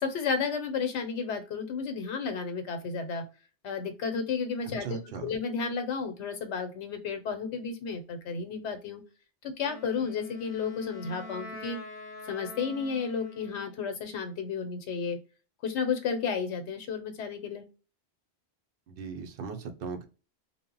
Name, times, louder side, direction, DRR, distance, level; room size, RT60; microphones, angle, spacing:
voice 1, 0.0-3.2 3.6-9.0 9.4-11.8 12.3-15.2 15.6-17.7, left 5 dB, 85° left, 7 dB, 1.0 m, -32 dB
voice 2, 4.6-5.3 18.9-20.0, right 5 dB, 65° right, 6 dB, 0.7 m, -38 dB
Wind instrument woodwind instrument, 9.6-13.8, left 3 dB, 55° left, 0.8 m, -44 dB
2.1 x 2.0 x 3.7 m, 0.33 s
omnidirectional pair, 1.1 m